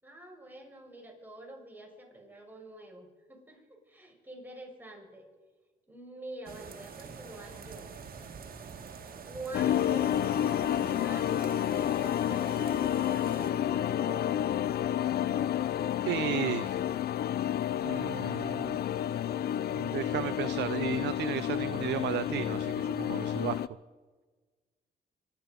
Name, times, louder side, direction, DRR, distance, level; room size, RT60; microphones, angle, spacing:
voice 1, 0.0-5.3 5.9-7.9 9.3-14.4, right 2 dB, 10° right, 1 dB, 6.0 m, -47 dB
sound 1, 6.5-13.5, right 6 dB, 55° right, 2.1 m, -46 dB
sound 2, 9.5-23.7, left 10 dB, 65° left, 0.5 m, -30 dB
voice 2, 16.1-16.9 17.8-18.8 19.7-23.6, right 13 dB, 75° right, 14 dB, 0.5 m, -34 dB
25.5 x 11.0 x 5.2 m, 1.3 s
supercardioid pair, 65°, 18 cm